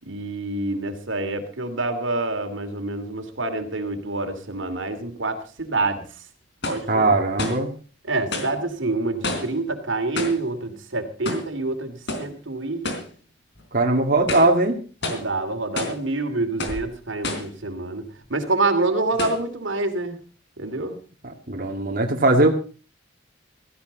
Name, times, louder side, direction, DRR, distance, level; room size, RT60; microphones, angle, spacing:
voice 1, 0.0-6.1 6.6-7.1 8.1-12.9 15.1-18.0 18.3-20.2 20.6-21.0, right 2 dB, 90° right, 6 dB, 2.8 m, -27 dB
sound 1, 5.6-5.7 6.6-6.9 7.4-7.7 8.3-8.6 9.2-9.6 10.2-10.5 11.3-11.5 12.1-12.3 12.8-13.1 13.6-13.7 14.2-14.6 15.0-15.3 15.8-16.0 16.6-16.9 17.2-17.6 18.3-18.4 19.2-19.5, left 2 dB, 65° left, 3.6 m, -29 dB
voice 2, 6.9-7.7 13.7-14.8 21.2-22.5, right 2 dB, 50° right, 2 dB, 2.4 m, -20 dB
17.0 x 15.5 x 4.1 m, 0.35 s
head